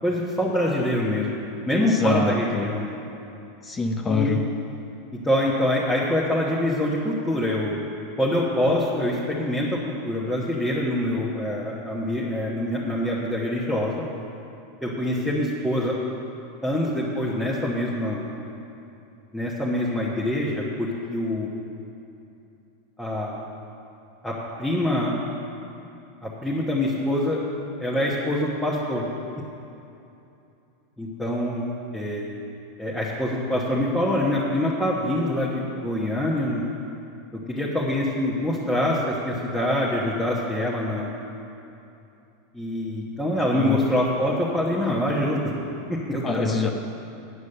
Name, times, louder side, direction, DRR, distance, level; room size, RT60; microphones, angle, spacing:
voice 1, 0.0-1.3 1.7-2.9 4.1-4.4 5.1-7.8 8.2-14.0 14.8-16.0 16.6-18.2 19.3-21.5 23.0-23.4 24.2-25.1 26.2-27.4 27.8-29.0 31.0-31.7 31.9-32.2 32.8-36.6 37.3-41.1 42.5-45.5 45.9-46.5, left 1 dB, 5° left, -6 dB, 1.2 m, -25 dB
voice 2, 1.7-2.7 3.6-4.4 43.5-43.8 46.2-46.7, left 4 dB, 20° left, 4 dB, 0.7 m, -25 dB
9.4 x 8.3 x 6.7 m, 2.8 s
supercardioid pair, 140°, 0 cm